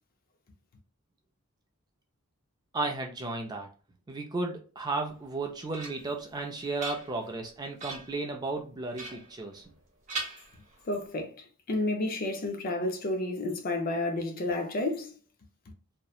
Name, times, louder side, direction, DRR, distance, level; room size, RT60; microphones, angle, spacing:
voice 1, 2.7-3.7 4.1-9.6, right 3 dB, 20° right, 0.4 m, -34 dB
sound 1, 5.2-6.2 6.6-7.4 7.8-8.2 8.9-9.8 10.1-11.0, right 3 dB, 35° right, 0.8 m, -41 dB
voice 2, 10.9-15.1, left 2 dB, 40° left, 0.5 m, -31 dB
2.7 x 2.1 x 2.3 m
head